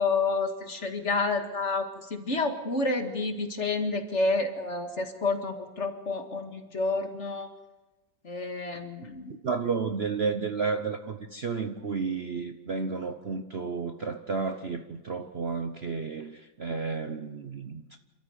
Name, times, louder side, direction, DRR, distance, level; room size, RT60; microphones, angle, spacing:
voice 1, 0.0-7.5 8.2-9.3, left 3 dB, 40° left, 2.2 m, -29 dB
voice 2, 9.4-18.0, right 5 dB, 45° right, 0.9 m, -32 dB
27.5 x 13.5 x 9.3 m
omnidirectional pair, 1.9 m